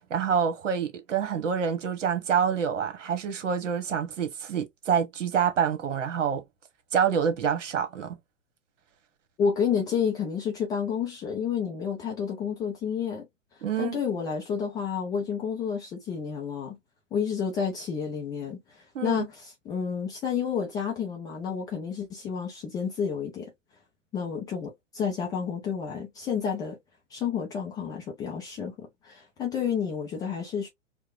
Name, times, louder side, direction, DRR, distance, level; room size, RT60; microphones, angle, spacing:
voice 1, 0.1-6.4 6.9-8.2 13.6-14.0 18.9-19.2, right 7 dB, 70° right, 1.1 m, -27 dB
voice 2, 9.4-13.3 13.8-16.8 17.1-23.5 24.1-26.8 27.1-30.7, left 7 dB, 10° left, 0.4 m, -30 dB
4.6 x 2.2 x 2.4 m
figure-of-eight pair, 110°, 38 cm